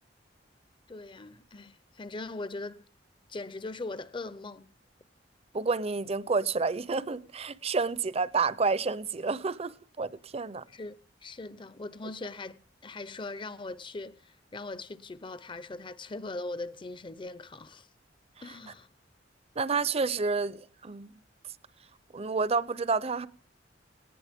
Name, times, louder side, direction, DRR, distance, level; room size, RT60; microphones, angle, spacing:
voice 1, 0.9-2.8 3.3-4.7 10.7-10.9 11.2-17.9 18.4-18.9, left 2 dB, 25° left, 0.6 m, -40 dB
voice 2, 5.5-10.6 19.6-21.1 22.1-23.3, right 4 dB, 35° right, 0.6 m, -29 dB
19.0 x 18.5 x 3.6 m
head